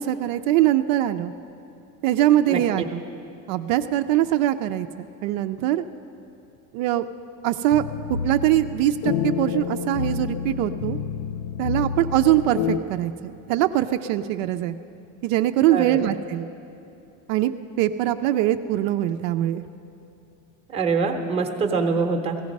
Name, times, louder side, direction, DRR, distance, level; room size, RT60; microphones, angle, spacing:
voice 1, 0.0-1.3 2.0-3.0 3.5-5.8 6.7-7.0 7.4-7.8 8.2-11.0 11.6-14.8 15.2-16.5 17.3-19.6, right 13 dB, 65° right, 8 dB, 0.6 m, -22 dB
voice 2, 2.5-2.9 15.7-16.0 20.7-22.4, right 4 dB, 15° right, 3 dB, 0.8 m, -24 dB
sound 1, 7.7-12.8, left 7 dB, 70° left, 0.6 m, -29 dB
17.0 x 15.0 x 5.3 m, 2.7 s
cardioid pair, 165°, 40 cm